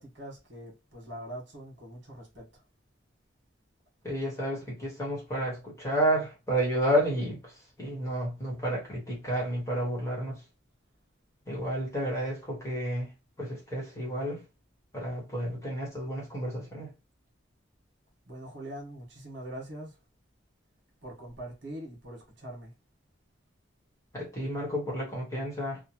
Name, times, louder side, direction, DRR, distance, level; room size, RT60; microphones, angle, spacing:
voice 1, 0.0-2.6 18.3-19.9 21.0-22.7, right 1 dB, 60° right, 1.2 m, -43 dB
voice 2, 4.0-7.5 7.8-10.4 11.5-13.1 13.4-14.4 14.9-16.9 24.1-25.8, equal, 15° left, 1.1 m, -31 dB
2.9 x 2.1 x 2.9 m
head